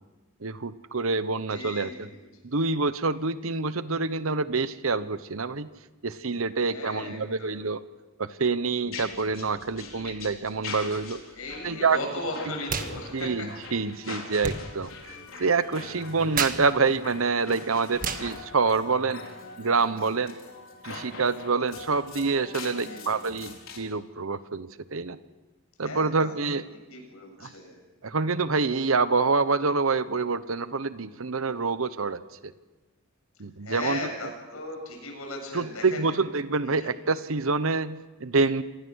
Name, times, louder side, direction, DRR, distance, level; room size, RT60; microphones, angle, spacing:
voice 1, 0.4-2.1 2.4-5.7 6.0-7.8 8.2-11.2 11.6-12.0 13.1-19.2 19.6-20.4 20.8-25.2 25.8-26.6 27.4-27.5 28.0-32.5 33.4-34.1 35.5-38.6, right 4 dB, 75° right, 14 dB, 1.0 m, -27 dB
voice 2, 1.5-2.2 6.7-7.6 9.7-10.2 11.3-13.5 17.6-17.9 22.5-23.1 25.8-26.3 26.9-27.7 33.6-36.0 36.8-37.0, left 2 dB, 85° left, 2 dB, 7.5 m, -37 dB
sound 1, 8.9-23.8, left 4 dB, 70° left, 4.6 m, -43 dB
sound 2, 12.6-12.9 13.2-19.4, right 5 dB, 40° right, 1.6 m, -35 dB
26.5 x 20.0 x 6.4 m, 1.2 s
head